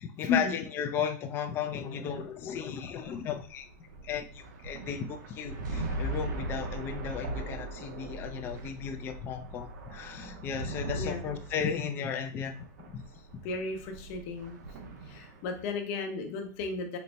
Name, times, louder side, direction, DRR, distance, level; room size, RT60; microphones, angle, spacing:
voice 1, 0.0-3.7 4.0-12.5 12.9-13.0, left 7 dB, 25° left, 6 dB, 0.3 m, -35 dB
sound 1, 2.0-15.6, right 2 dB, 75° right, 0.7 m, -39 dB
voice 2, 13.4-14.6 15.1-17.0, left 4 dB, 50° left, 4 dB, 0.8 m, -34 dB
4.0 x 2.0 x 4.4 m, 0.40 s
supercardioid pair, 160°, 10 cm